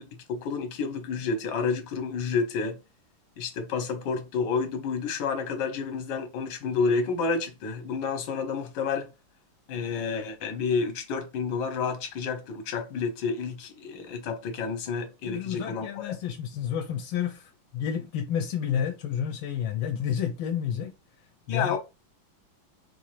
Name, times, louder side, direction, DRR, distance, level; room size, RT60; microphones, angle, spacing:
voice 1, 0.0-2.8 3.4-9.1 9.7-16.1 21.5-21.8, left 5 dB, 65° left, 1.4 m, -30 dB
voice 2, 15.3-20.9 21.5-21.8, left 8 dB, 80° left, 1.3 m, -30 dB
4.4 x 2.4 x 3.1 m
omnidirectional pair, 2.2 m